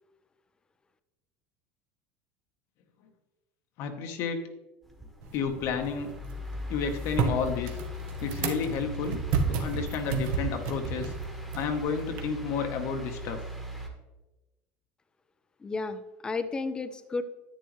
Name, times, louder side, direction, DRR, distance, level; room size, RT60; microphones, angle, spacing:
voice 1, 3.8-4.4 5.3-6.1 6.7-7.8 8.2-9.2 9.5-11.1 11.5-13.4, left 6 dB, 55° left, 5 dB, 1.0 m, -31 dB
sound 1, 4.8-13.9, equal, ahead, 1.5 m, -39 dB
sound 2, 5.2-12.2, right 5 dB, 70° right, 1.3 m, -33 dB
voice 2, 15.6-17.2, left 3 dB, 15° left, 11 dB, 0.6 m, -33 dB
10.5 x 9.2 x 3.2 m, 1.1 s
cardioid pair, 140°, 6 cm